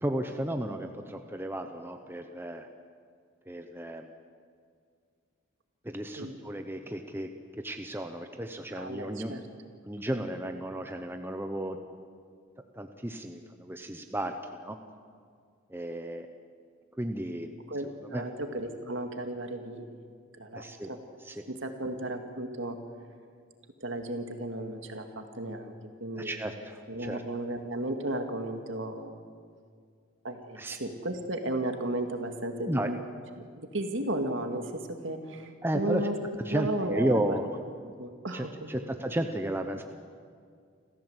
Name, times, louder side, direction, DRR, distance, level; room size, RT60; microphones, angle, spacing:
voice 1, 0.0-2.7 3.5-4.1 5.8-7.3 7.6-9.3 9.8-11.8 12.7-14.8 15.7-16.3 17.0-17.5 18.1-18.2 20.5-20.9 21.2-21.4 26.1-27.2 30.6-30.8 32.7-32.9 35.6-36.0 36.4-37.5 38.3-39.8, right 1 dB, 10° right, 6 dB, 0.9 m, -33 dB
voice 2, 8.8-9.4 17.7-17.9 18.1-20.0 20.4-21.0 21.5-22.8 23.8-25.7 26.0-26.6 26.9-29.2 30.2-33.0 33.3-36.2 36.5-37.4 38.0-38.7, right 1 dB, 60° right, 5 dB, 2.1 m, -34 dB
28.0 x 15.0 x 8.1 m, 2.1 s
head